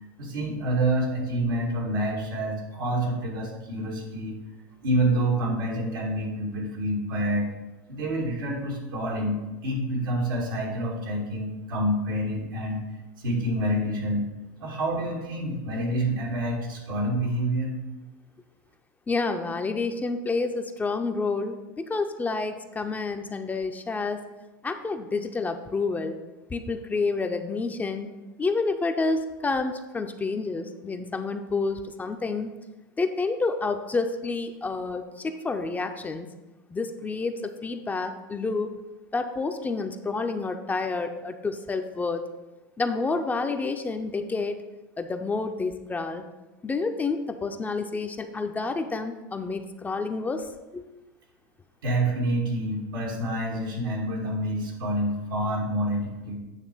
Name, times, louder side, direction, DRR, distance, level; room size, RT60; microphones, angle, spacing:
voice 1, 0.2-4.3 4.8-7.5 7.9-12.8 13.2-14.2 14.6-17.7 51.8-56.4, right 1 dB, 90° right, -2 dB, 2.2 m, -27 dB
voice 2, 19.1-24.2 24.6-26.2 26.5-28.1 28.4-32.5 33.0-36.3 36.7-38.8 39.1-42.2 42.8-44.6 45.0-46.3 46.6-50.5 50.7-50.8, left 3 dB, 15° left, 6 dB, 0.6 m, -29 dB
9.1 x 3.3 x 6.5 m, 1.1 s
hypercardioid pair, 110°, 11 cm